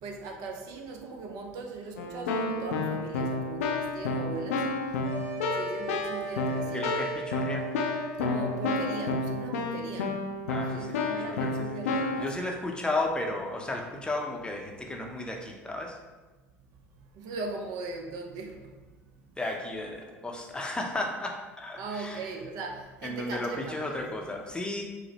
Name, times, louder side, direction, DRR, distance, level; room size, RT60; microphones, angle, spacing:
voice 1, 0.0-4.7 5.3-6.8 8.2-10.2 10.7-12.3 17.1-18.7 21.8-24.0, right 3 dB, 55° right, 3 dB, 0.5 m, -39 dB
Keyboard (musical), 2.0-12.3, left 3 dB, 75° left, 0.4 m, -31 dB
sound 1, 5.0-9.4, right 3 dB, 40° right, 0.9 m, -38 dB
voice 2, 6.7-7.7 10.5-16.0 19.4-22.3 23.0-24.8, left 2 dB, 10° left, 1 dB, 0.6 m, -34 dB
4.9 x 2.0 x 2.9 m, 1.2 s
figure-of-eight pair, 70°, 7 cm